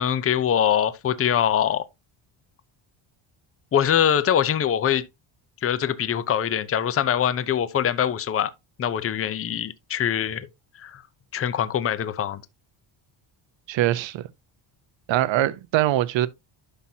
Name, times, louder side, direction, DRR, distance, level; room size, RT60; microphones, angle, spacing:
voice 1, 0.0-1.8 3.7-5.1 5.6-8.5 8.8-10.5 10.8-11.0 11.3-12.4, left 9 dB, 30° left, 0.6 m, -23 dB
voice 2, 13.7-14.3 15.1-16.3, right 14 dB, 65° right, 0.8 m, -22 dB
11.5 x 5.8 x 2.8 m
cardioid pair, 150°, 49 cm